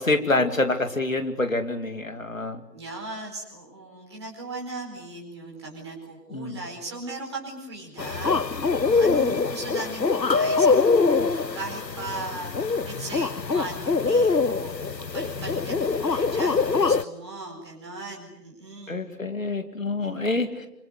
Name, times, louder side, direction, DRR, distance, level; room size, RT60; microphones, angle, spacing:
voice 1, 0.0-2.6 6.3-6.6 18.9-20.7, left 2 dB, 50° left, 7 dB, 2.6 m, -26 dB
voice 2, 2.7-19.0 20.0-20.4, right 2 dB, 15° right, -2 dB, 4.5 m, -38 dB
sound 1, 8.0-17.0, left 4 dB, 85° left, 1.1 m, -23 dB
26.5 x 26.0 x 8.2 m, 0.84 s
figure-of-eight pair, 165°, 49 cm